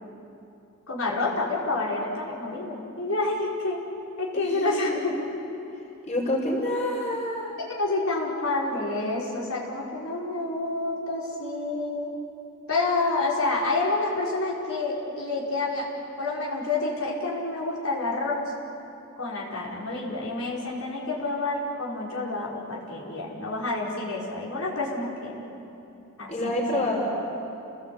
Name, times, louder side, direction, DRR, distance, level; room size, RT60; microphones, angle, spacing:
voice 1, 0.9-3.8 4.2-5.2 7.7-12.1 12.7-15.9 16.2-18.5 19.2-25.4 26.2-26.9, left 2 dB, 85° left, -5 dB, 5.1 m, -28 dB
voice 2, 4.3-5.0 6.0-7.6 26.3-27.1, left 1 dB, 35° left, -3 dB, 5.5 m, -28 dB
29.5 x 19.0 x 8.6 m, 2.8 s
head